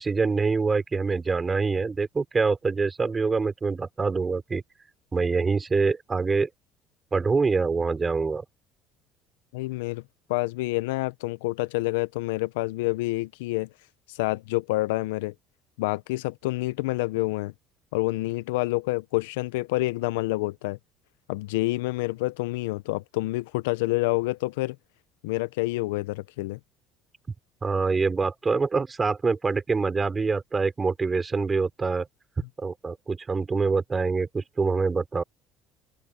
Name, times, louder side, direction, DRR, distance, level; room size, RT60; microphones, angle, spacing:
voice 1, 0.0-4.6 5.1-6.5 7.1-8.4 27.6-32.1 32.6-35.2, right 4 dB, 25° right, 5.8 m, -25 dB
voice 2, 9.5-10.0 10.3-13.7 14.1-15.3 15.8-17.5 17.9-20.8 21.3-24.8 25.2-26.6, left 20 dB, 80° left, 0.9 m, -28 dB
open air
hypercardioid pair, 70°, 0 cm